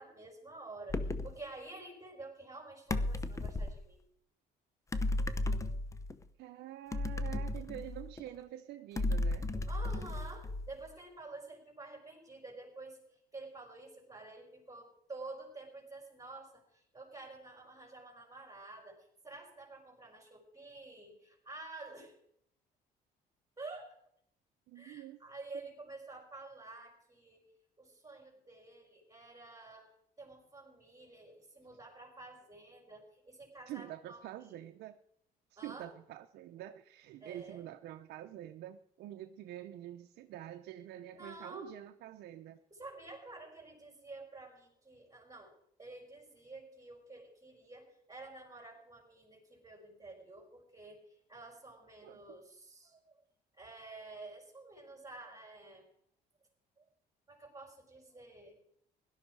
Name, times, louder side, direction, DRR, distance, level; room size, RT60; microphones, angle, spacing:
voice 1, 0.0-4.0 9.7-22.1 23.6-23.9 24.7-27.4 27.8-29.9 30.2-34.6 35.6-35.9 37.2-37.6 41.1-41.7 42.7-45.5 45.8-53.2 53.5-55.9 56.8-56.9 57.3-58.6, right 2 dB, 20° right, 5.0 m, -50 dB
sound 1, 0.9-1.4 2.9-3.8 4.9-6.2 6.9-8.3 9.0-10.9, left 2 dB, 20° left, 0.8 m, -34 dB
voice 2, 6.4-9.5 24.7-25.2 33.7-35.0 35.5-42.6 52.0-52.2, right 13 dB, 75° right, 0.7 m, -47 dB
17.0 x 12.0 x 4.7 m
cardioid pair, 110°, 17 cm